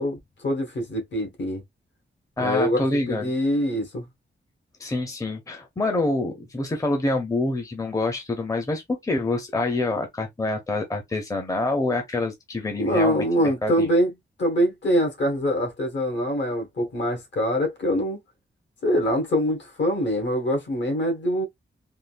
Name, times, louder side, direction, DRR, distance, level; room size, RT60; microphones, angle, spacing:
voice 1, 0.0-1.6 2.4-4.1 12.8-14.1 14.4-18.2 18.8-21.5, equal, 60° left, 1.3 m, -24 dB
voice 2, 2.4-3.3 4.8-13.9, left 2 dB, 15° left, 0.6 m, -26 dB
3.7 x 2.3 x 2.4 m
wide cardioid pair, 180°, 21 cm